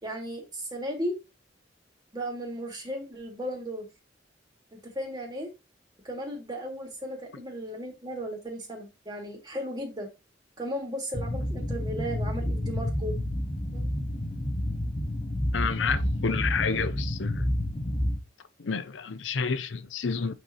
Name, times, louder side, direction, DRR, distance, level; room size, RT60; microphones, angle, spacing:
voice 1, 0.0-1.2 2.1-3.9 4.7-5.5 6.0-10.1 10.6-13.2 13.7-13.9, equal, 25° right, 2.4 m, -35 dB
sound 1, 11.1-18.2, left 1 dB, 30° left, 1.0 m, -29 dB
voice 2, 15.5-17.5 18.6-20.3, left 5 dB, 85° left, 0.6 m, -30 dB
8.3 x 4.4 x 3.0 m
head